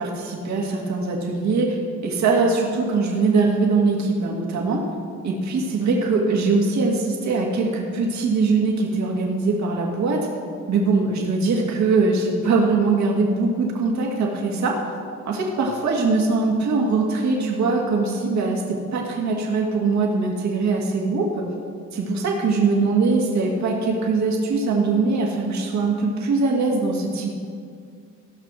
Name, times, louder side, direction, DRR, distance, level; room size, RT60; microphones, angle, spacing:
voice 1, 0.0-4.8 5.2-10.3 10.7-14.8 15.2-21.3 21.9-27.3, right 3 dB, 65° right, -1 dB, 2.0 m, -22 dB
15.0 x 6.1 x 6.2 m, 2.2 s
cardioid pair, 90°, 30 cm